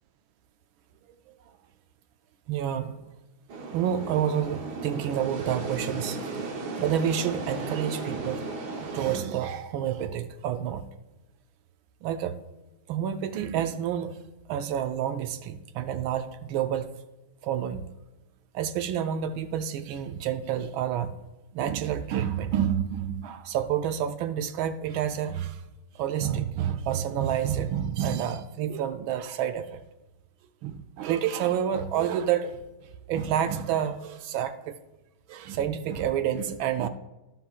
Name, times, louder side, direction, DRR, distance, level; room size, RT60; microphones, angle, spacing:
voice 1, 2.5-2.9 3.7-6.2 6.8-8.5 8.8-10.8 12.0-12.3 12.9-14.1 14.5-16.9 17.4-17.8 18.5-21.1 21.5-25.6 26.0-29.8 30.6-32.6 33.1-34.8 35.3-36.9, right 9 dB, 75° right, 9 dB, 1.3 m, -29 dB
sound 1, 3.5-9.2, right 3 dB, 55° right, 1.5 m, -35 dB
16.5 x 5.8 x 2.4 m, 1.1 s
omnidirectional pair, 2.4 m